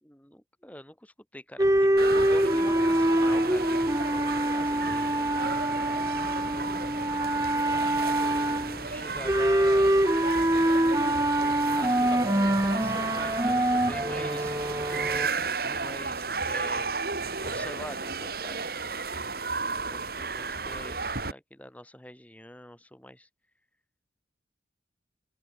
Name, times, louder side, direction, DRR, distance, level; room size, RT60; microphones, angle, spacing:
voice 1, 0.0-6.2 7.7-9.9 11.7-14.6 15.6-17.0 17.4-19.0 19.8-23.3, left 1 dB, 10° left, 3.4 m, -45 dB
sound 1, 1.6-15.3, right 1 dB, 15° right, 1.3 m, -25 dB
sound 2, 2.0-21.3, right 4 dB, 55° right, 3.7 m, -33 dB
open air
head